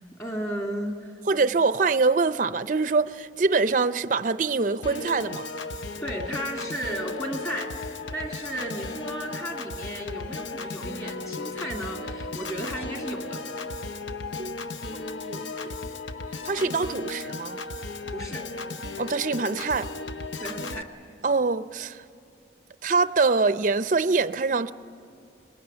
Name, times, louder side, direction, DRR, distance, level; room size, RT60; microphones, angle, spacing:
voice 1, 0.1-1.2 6.0-7.7 8.1-13.4 18.1-18.5 20.4-20.9, right 1 dB, 15° left, 2.5 m, -34 dB
voice 2, 1.3-5.5 14.4-14.6 14.9-15.7 16.4-17.6 19.0-19.9 21.2-22.0 22.8-24.7, right 4 dB, 45° right, 0.5 m, -24 dB
Piano / Organ, 4.8-20.8, left 3 dB, 85° left, 0.8 m, -35 dB
24.0 x 20.5 x 8.8 m
head